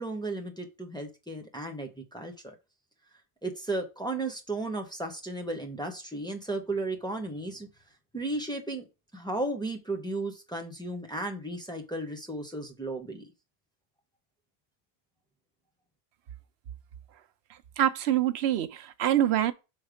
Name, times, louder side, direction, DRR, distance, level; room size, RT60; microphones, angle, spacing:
voice 1, 0.0-2.5 3.4-7.7 8.1-8.8 9.1-13.3, right 2 dB, 5° left, 0.9 m, -34 dB
voice 2, 17.8-19.5, right 11 dB, 90° right, 0.9 m, -25 dB
6.3 x 3.2 x 5.0 m
omnidirectional pair, 1.0 m